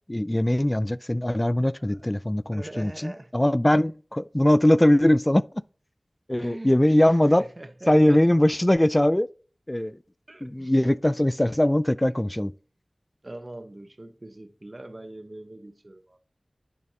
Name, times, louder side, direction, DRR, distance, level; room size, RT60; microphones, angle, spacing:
voice 1, 0.1-5.4 6.3-7.4 7.9-9.3 9.7-10.0 10.4-12.5, left 1 dB, 20° left, 0.3 m, -21 dB
voice 2, 2.5-3.3 3.7-3.9 6.4-8.2 10.3-10.9 11.5-11.6 13.2-16.2, right 1 dB, 40° right, 1.0 m, -42 dB
10.0 x 7.4 x 2.8 m
wide cardioid pair, 40°, 0 cm